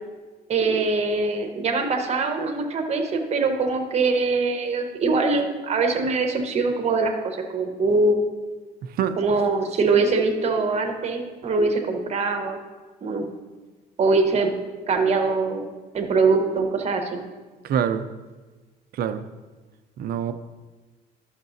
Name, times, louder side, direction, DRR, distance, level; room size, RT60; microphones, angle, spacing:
voice 1, 0.5-8.2 9.2-12.6 13.0-13.3 14.0-14.5 14.9-15.7 15.9-17.2, right 3 dB, 40° right, 4 dB, 1.2 m, -23 dB
voice 2, 8.8-9.2 17.6-18.0 18.9-19.2 20.0-20.3, right 8 dB, 65° right, 11 dB, 0.6 m, -25 dB
11.5 x 6.6 x 2.7 m, 1.3 s
cardioid pair, 110°, 17 cm